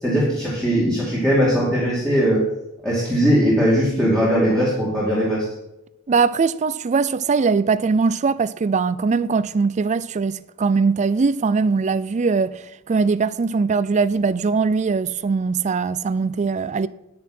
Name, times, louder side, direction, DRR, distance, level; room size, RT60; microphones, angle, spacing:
voice 1, 0.0-2.4 2.8-5.4, equal, 5° left, 2.5 m, -19 dB
voice 2, 6.1-16.9, right 4 dB, 35° right, 0.4 m, -21 dB
9.8 x 9.5 x 4.4 m
head